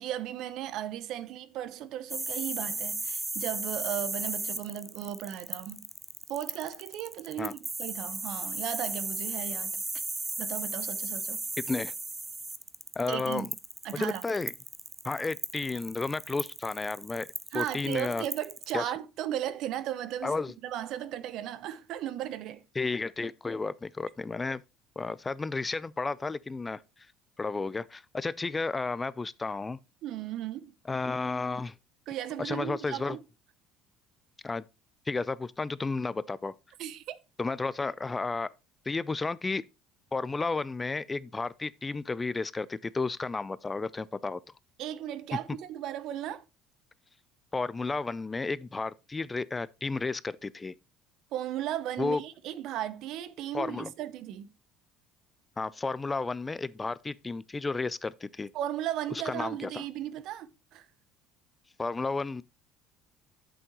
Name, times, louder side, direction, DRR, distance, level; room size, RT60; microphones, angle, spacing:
voice 1, 0.0-5.9 6.3-9.8 10.4-11.4 13.1-13.5 13.8-14.2 17.5-20.3 20.6-22.6 30.0-30.7 32.1-33.2 36.8-37.2 44.8-46.4 51.3-54.5 58.5-60.8, right 11 dB, 65° right, 0.8 m, -36 dB
sound 1, 2.1-18.7, right 2 dB, 10° right, 0.8 m, -35 dB
voice 2, 13.0-13.5 13.9-14.5 15.0-17.3 17.5-18.3 18.7-18.9 20.2-20.5 22.8-24.6 25.0-26.8 27.4-29.8 30.9-31.7 32.4-33.2 34.4-34.7 35.1-36.5 37.4-38.5 38.9-39.6 40.1-44.4 47.5-50.7 52.0-52.2 53.5-53.9 55.6-58.5 59.1-59.8 61.8-62.4, left 3 dB, 20° left, 0.4 m, -32 dB
8.6 x 7.0 x 3.0 m
supercardioid pair, 105°, 0 cm